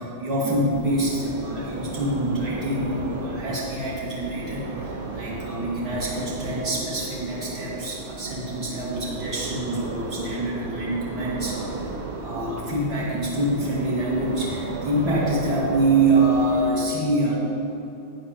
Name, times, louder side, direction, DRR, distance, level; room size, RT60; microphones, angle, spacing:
voice 1, 0.0-17.3, right 2 dB, 30° right, -5 dB, 2.3 m, -25 dB
sound 1, 0.7-16.7, right 3 dB, 50° right, 1.1 m, -34 dB
11.0 x 8.6 x 3.2 m, 2.8 s
figure-of-eight pair, 90°, 0 cm